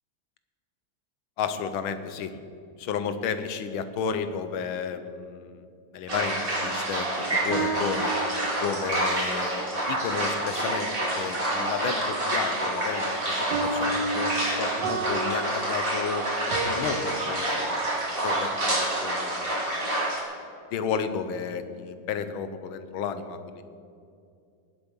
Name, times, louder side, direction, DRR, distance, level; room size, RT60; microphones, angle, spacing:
voice 1, 1.4-2.4 2.8-5.6 5.9-7.1 7.4-8.1 8.6-16.2 16.6-17.9 18.2-19.6 20.7-23.6, left 6 dB, 85° left, 10 dB, 1.6 m, -32 dB
sound 1, 6.1-20.2, right 1 dB, 30° right, 2.4 m, -28 dB
sound 2, 7.1-8.9 13.5-17.0, right 3 dB, 60° right, 1.7 m, -32 dB
18.5 x 8.1 x 5.5 m, 2.4 s
omnidirectional pair, 2.2 m